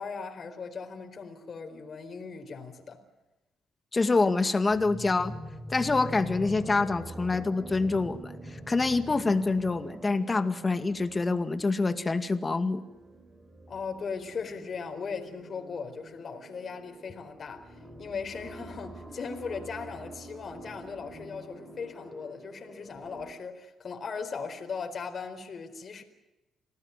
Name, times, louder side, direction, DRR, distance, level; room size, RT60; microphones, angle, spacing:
voice 1, 0.0-3.0 13.7-26.0, left 5 dB, 45° left, 4.3 m, -38 dB
voice 2, 3.9-5.3 5.7-12.8, left 3 dB, 25° left, 2.1 m, -26 dB
sound 1, 4.6-23.3, equal, 15° right, 4.7 m, -45 dB
27.0 x 18.0 x 9.5 m
cardioid pair, 90°, 0 cm